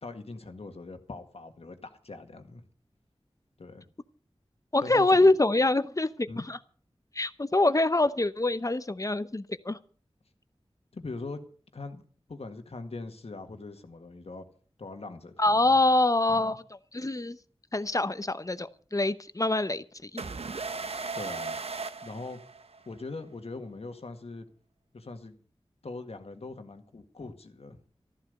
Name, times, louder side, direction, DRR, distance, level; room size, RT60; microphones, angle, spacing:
voice 1, 0.0-2.6 3.6-3.9 4.8-5.3 6.3-6.5 10.9-11.4 11.7-12.0 12.3-14.5 14.8-15.7 16.3-16.5 21.1-21.6 22.0-22.4 22.9-24.5 24.9-25.3 25.8-27.8, left 3 dB, 80° left, 7 dB, 1.8 m, -41 dB
voice 2, 4.7-6.6 7.2-9.8 15.4-16.6 16.9-17.4 17.7-20.2, left 2 dB, 35° left, 13 dB, 0.9 m, -25 dB
sound 1, 20.2-23.0, right 4 dB, 80° right, 0.8 m, -36 dB
14.0 x 11.5 x 6.6 m, 0.44 s
wide cardioid pair, 70°, 10 cm